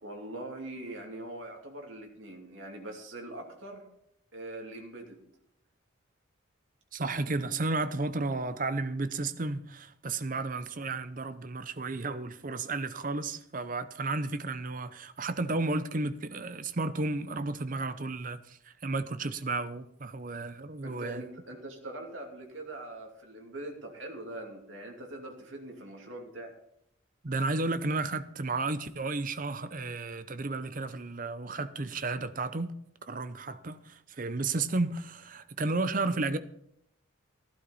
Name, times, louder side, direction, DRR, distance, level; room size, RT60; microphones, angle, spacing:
voice 1, 0.0-3.8 4.3-5.2 20.8-26.5, right 1 dB, 70° right, 2.7 m, -42 dB
voice 2, 6.9-21.2 27.2-32.7 33.0-36.4, right 3 dB, 40° right, 0.7 m, -33 dB
15.5 x 11.5 x 4.1 m
head